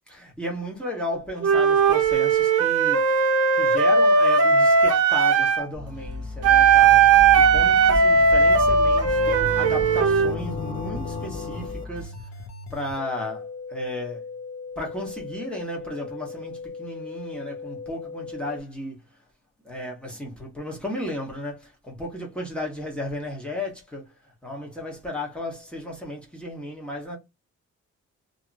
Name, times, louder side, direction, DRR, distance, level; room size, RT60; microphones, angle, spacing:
voice 1, 0.1-3.0 3.6-7.1 7.4-12.1 12.7-14.2 14.8-19.0 19.6-24.1 24.4-27.2, left 1 dB, 5° left, 1.2 m, -34 dB
Wind instrument woodwind instrument, 1.4-5.7 6.4-10.3, right 5 dB, 55° right, 0.8 m, -18 dB
sound 1, 5.7-12.0, left 3 dB, 25° left, 0.8 m, -33 dB
sound 2, 9.3-18.6, left 5 dB, 65° left, 0.8 m, -38 dB
2.9 x 2.6 x 2.5 m
wide cardioid pair, 150°, 30 cm